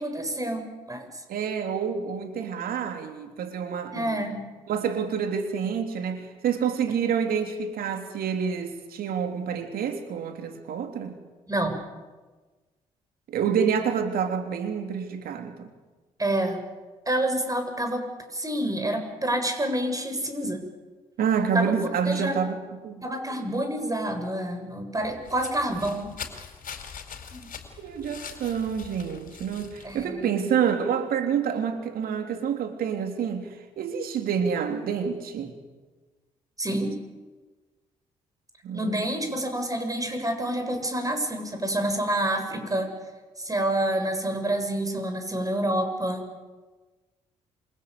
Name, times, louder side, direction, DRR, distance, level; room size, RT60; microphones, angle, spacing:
voice 1, 0.0-1.2 3.9-4.4 11.5-11.8 16.2-16.6 17.1-18.1 18.3-20.6 21.5-22.4 23.0-26.1 27.3-27.5 29.8-30.4 36.6-37.0 38.7-42.9 43.4-46.3, right 1 dB, 20° right, 6 dB, 7.5 m, -28 dB
voice 2, 1.3-4.2 4.7-11.2 13.3-15.7 21.2-22.6 22.8-23.0 27.8-33.5 33.8-35.5 38.6-39.1, right 7 dB, 65° right, 7 dB, 3.3 m, -28 dB
sound 1, 25.0-30.1, left 7 dB, 55° left, 4.6 m, -42 dB
28.0 x 25.0 x 8.3 m, 1.3 s
hypercardioid pair, 45°, 16 cm